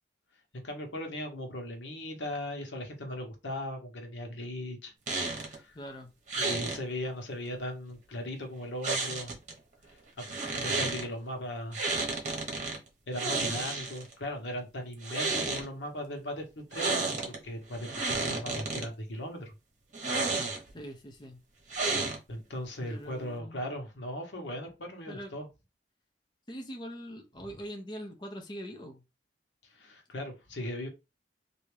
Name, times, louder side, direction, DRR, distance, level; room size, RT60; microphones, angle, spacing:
voice 1, 0.5-4.9 5.3-5.7 6.4-9.4 10.2-11.8 13.1-19.5 22.3-25.5 29.7-30.9, left 1 dB, 85° left, 1.1 m, -38 dB
sound 1, 5.1-5.6 6.3-6.8 8.8-9.5 10.2-11.0 11.7-12.8 13.1-14.1 14.9-15.7 16.7-17.4 17.7-18.9 19.9-20.8 21.7-22.4, right 3 dB, 40° right, 1.1 m, -31 dB
voice 2, 5.7-6.1 20.7-21.4 22.8-23.7 24.4-24.5 25.1-25.3 26.5-29.0, equal, 25° left, 0.6 m, -43 dB
3.4 x 2.7 x 3.3 m
head